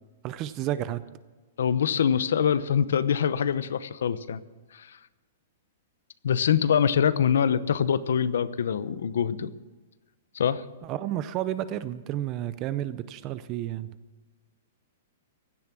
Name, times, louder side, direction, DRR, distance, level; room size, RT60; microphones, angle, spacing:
voice 1, 0.2-1.0 10.8-13.9, right 12 dB, 25° right, 14 dB, 0.5 m, -31 dB
voice 2, 1.6-4.4 4.7-4.9 6.2-9.5 10.3-10.6, left 8 dB, 80° left, 15 dB, 0.9 m, -24 dB
16.0 x 12.0 x 6.1 m, 1.3 s
hypercardioid pair, 175°, 0 cm